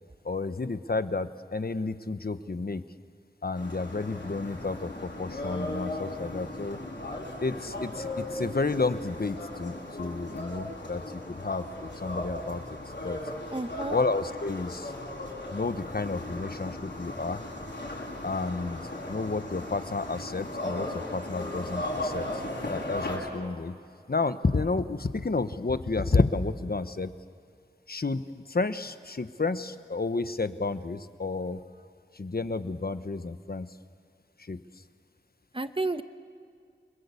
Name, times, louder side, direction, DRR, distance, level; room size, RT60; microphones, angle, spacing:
voice 1, 0.2-2.8 3.4-6.8 7.4-12.6 13.0-13.2 13.9-14.9 15.5-17.4 18.2-18.8 19.1-22.3 22.6-23.7 24.1-27.1 27.9-31.6 32.1-33.7 34.4-34.6, left 3 dB, 55° left, 11 dB, 1.1 m, -31 dB
sound 1, 3.5-23.2, left 1 dB, 75° left, 7.2 m, -37 dB
voice 2, 13.5-14.0 35.5-36.0, right 2 dB, 30° right, 10 dB, 1.1 m, -31 dB
29.0 x 21.5 x 8.4 m, 2.3 s
wide cardioid pair, 55°, 19 cm